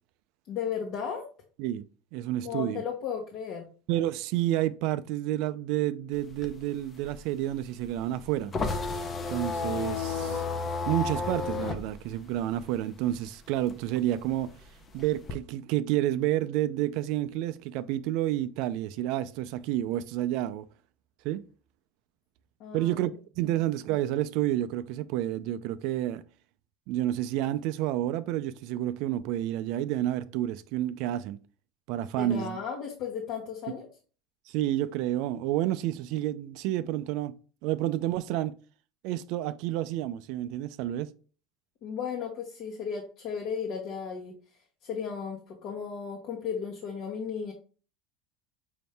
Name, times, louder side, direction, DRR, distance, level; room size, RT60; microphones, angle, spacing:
voice 1, 0.5-1.3 2.4-3.7 22.6-22.9 32.2-33.9 41.8-44.3 44.8-47.5, left 7 dB, 55° left, 1.0 m, -35 dB
voice 2, 2.1-2.8 3.9-8.5 9.3-10.5 10.9-14.5 14.9-20.7 21.2-21.4 22.7-26.2 26.9-31.4 31.9-32.6 34.5-37.3 37.6-38.5 39.0-41.1, right 13 dB, 65° right, 0.3 m, -29 dB
sound 1, 6.1-13.2 13.6-15.3, left 4 dB, 30° left, 0.6 m, -32 dB
5.6 x 2.6 x 3.3 m
supercardioid pair, 130°, 0 cm